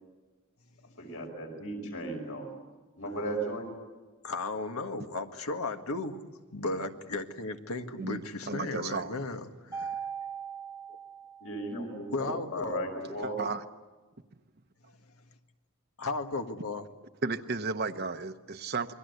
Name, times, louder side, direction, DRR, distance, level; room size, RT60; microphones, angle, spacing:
voice 1, 1.0-2.5 3.0-3.7 11.4-13.4, right 1 dB, 70° left, 3 dB, 5.7 m, -36 dB
voice 2, 4.2-6.2 6.5-10.0 12.1-12.8 16.0-16.9, left 3 dB, 85° left, 6 dB, 1.7 m, -35 dB
voice 3, 8.0-9.1 13.2-13.6 17.2-18.9, right 4 dB, 45° right, 7 dB, 0.9 m, -34 dB
Mallet percussion, 9.7-12.0, right 7 dB, 15° right, 1.1 m, -40 dB
28.5 x 22.5 x 8.1 m, 1.3 s
head